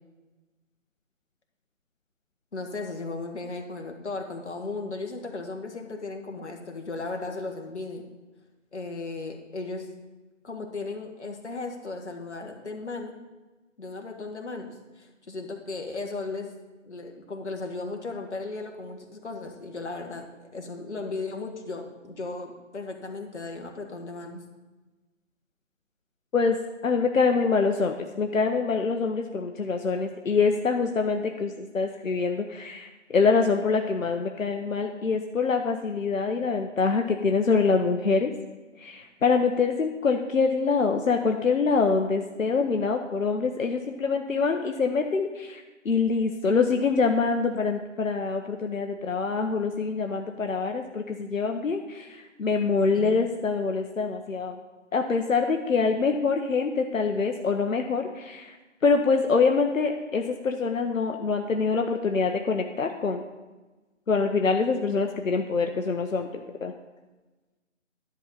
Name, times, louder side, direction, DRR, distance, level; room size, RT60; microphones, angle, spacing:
voice 1, 2.5-8.1 8.7-9.9 10.4-13.2 13.8-16.5 16.9-24.4 52.9-53.1, left 3 dB, 60° left, 3 dB, 1.5 m, -36 dB
voice 2, 26.8-38.3 38.8-54.6 54.9-58.5 58.8-63.2 64.1-66.7, left 4 dB, 85° left, 4 dB, 0.9 m, -25 dB
11.0 x 3.9 x 7.1 m, 1.2 s
figure-of-eight pair, 165°, 38 cm